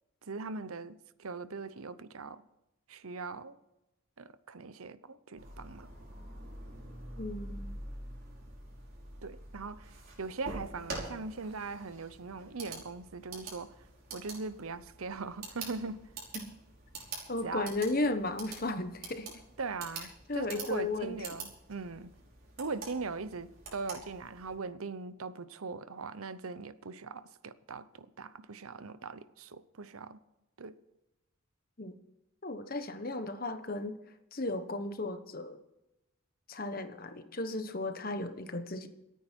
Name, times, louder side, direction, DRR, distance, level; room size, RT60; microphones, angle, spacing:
voice 1, 0.2-2.4 2.9-3.6 4.2-5.9 9.2-13.7 14.1-16.0 17.4-17.7 19.6-22.1 22.6-30.2 30.6-30.8, right 4 dB, 85° right, 0.8 m, -40 dB
sound 1, 5.4-24.6, right 3 dB, 45° right, 5.1 m, -46 dB
voice 2, 7.2-7.7 16.3-16.5 17.3-19.3 20.3-21.2 31.8-32.0 32.4-34.0 34.3-35.6 36.5-38.9, left 2 dB, 45° left, 1.2 m, -35 dB
27.0 x 9.4 x 4.6 m
head